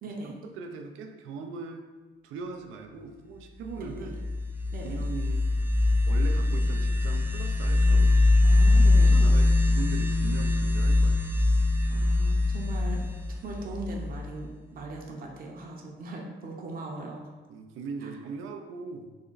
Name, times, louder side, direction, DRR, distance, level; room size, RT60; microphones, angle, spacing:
voice 1, 0.0-0.3 3.8-4.1 4.7-5.0 8.4-9.1 11.9-13.0 13.3-17.3 18.0-18.1, right 2 dB, 45° right, 0 dB, 0.6 m, -39 dB
voice 2, 0.5-1.8 2.2-4.2 4.8-5.5 6.0-8.1 9.1-11.3 17.5-19.1, right 4 dB, 85° right, 5 dB, 0.4 m, -40 dB
sound 1, 3.9-14.4, left 2 dB, 10° right, 0.3 m, -23 dB
3.5 x 2.1 x 3.8 m, 1.3 s
cardioid pair, 90°, 20 cm